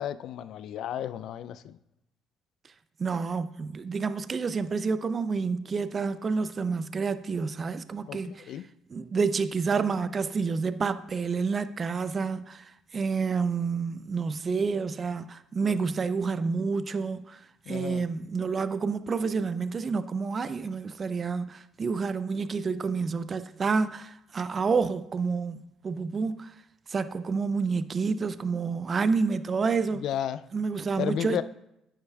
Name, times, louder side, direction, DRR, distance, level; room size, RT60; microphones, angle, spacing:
voice 1, 0.0-1.8 8.1-8.7 17.7-18.0 29.9-30.4 31.0-31.4, left 10 dB, 65° left, 0.3 m, -33 dB
voice 2, 3.0-8.5 8.9-17.4 17.7-26.5 26.9-30.0 30.5-31.4, right 5 dB, 40° right, 0.4 m, -29 dB
10.0 x 9.5 x 2.3 m
hypercardioid pair, 60°, 0 cm